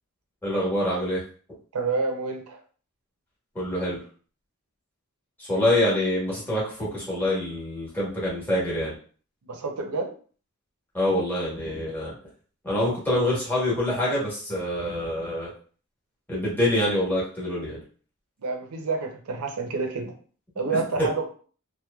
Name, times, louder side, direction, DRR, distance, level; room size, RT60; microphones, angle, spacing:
voice 1, 0.4-1.2 3.5-4.0 5.4-8.9 10.9-12.1 12.6-15.5 16.3-17.8 20.7-21.1, left 1 dB, 10° left, -8 dB, 1.1 m, -26 dB
voice 2, 1.7-2.6 9.4-10.1 18.4-20.1 20.6-21.3, right 4 dB, 85° right, 4 dB, 0.5 m, -28 dB
2.9 x 2.1 x 2.2 m, 0.42 s
head